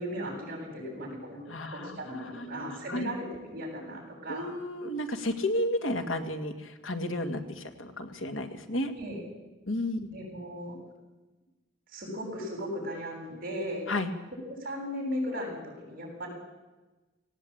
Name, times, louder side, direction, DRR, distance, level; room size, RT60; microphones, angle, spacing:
voice 1, 0.0-1.4 1.7-4.5 8.9-9.2 10.1-10.8 11.9-13.8 14.6-16.3, equal, 50° right, -1 dB, 7.5 m, -36 dB
voice 2, 1.5-3.1 4.3-8.9 9.7-10.1 13.9-14.1, left 1 dB, 85° left, 7 dB, 2.0 m, -32 dB
18.0 x 17.5 x 8.8 m, 1.2 s
head